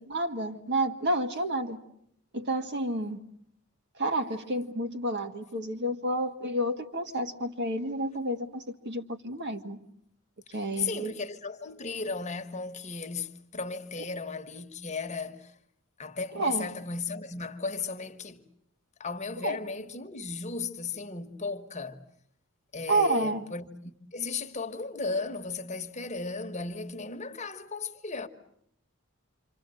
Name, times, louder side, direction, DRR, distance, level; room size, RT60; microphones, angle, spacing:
voice 1, 0.0-1.8 2.3-3.2 4.0-9.8 10.5-11.1 16.3-16.7 19.4-19.6 22.9-23.4, right 1 dB, 55° right, 2.0 m, -30 dB
voice 2, 10.5-15.5 16.0-18.4 19.0-22.0 22.7-28.3, left 4 dB, 35° left, 1.3 m, -35 dB
27.5 x 26.0 x 7.8 m
head